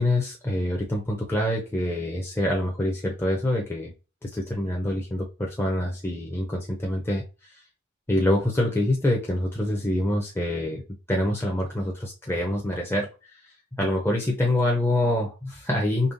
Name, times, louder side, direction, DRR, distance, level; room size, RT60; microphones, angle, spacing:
voice 1, 0.0-3.9 4.2-7.2 8.1-10.8 11.1-13.1 13.8-16.1, left 1 dB, 10° left, -1 dB, 0.6 m, -25 dB
5.3 x 3.2 x 2.6 m, 0.31 s
head